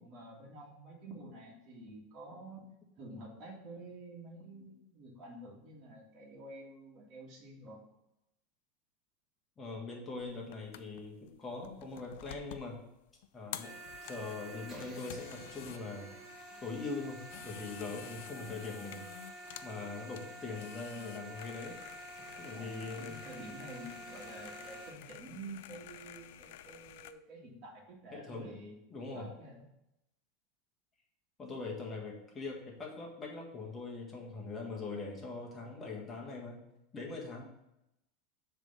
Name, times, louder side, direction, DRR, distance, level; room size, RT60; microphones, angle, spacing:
voice 1, 0.0-2.6 3.0-7.8 22.5-28.8 29.1-29.6, right 1 dB, 40° right, -3 dB, 1.8 m, -49 dB
voice 2, 9.6-12.8 13.3-13.7 14.0-16.1 16.6-19.1 19.6-21.7 22.4-23.1 28.1-28.5 28.9-29.3 31.4-36.6 36.9-37.5, left 3 dB, 15° left, -2 dB, 1.5 m, -42 dB
sound 1, 10.2-27.1, left 12 dB, 70° left, 0.4 m, -51 dB
sound 2, 13.6-24.9, right 1 dB, 20° right, 1.6 m, -49 dB
7.3 x 3.4 x 5.5 m, 0.87 s
supercardioid pair, 160°, 0 cm